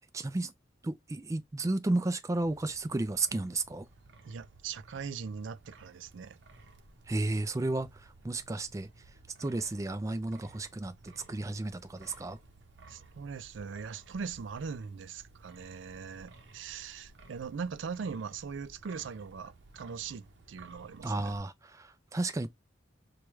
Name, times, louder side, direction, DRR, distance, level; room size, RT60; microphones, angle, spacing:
voice 1, 0.1-0.5 0.8-3.9 7.1-8.9 9.4-12.4 21.0-22.5, right 2 dB, 15° right, 0.3 m, -33 dB
Wind, 2.4-21.4, right 2 dB, 70° right, 0.8 m, -56 dB
voice 2, 4.3-6.4 12.9-21.3, right 6 dB, 90° right, 0.4 m, -40 dB
4.7 x 2.3 x 3.0 m
head